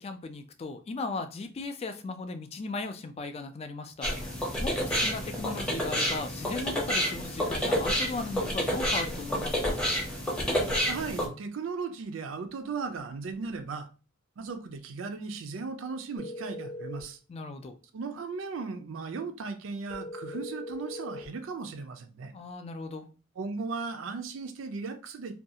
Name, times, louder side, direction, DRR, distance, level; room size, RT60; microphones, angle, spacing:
voice 1, 0.0-4.1 4.6-9.9 17.3-17.8 22.3-23.1, left 3 dB, 30° left, 0.3 m, -37 dB
sound 1, 4.0-11.3, equal, 5° left, 0.7 m, -29 dB
voice 2, 10.9-13.9 14.4-17.2 17.9-22.3 23.4-25.4, right 4 dB, 70° right, 0.4 m, -36 dB
sound 2, 16.2-17.1 19.9-21.3, left 1 dB, 60° left, 0.7 m, -40 dB
2.5 x 2.3 x 2.7 m
head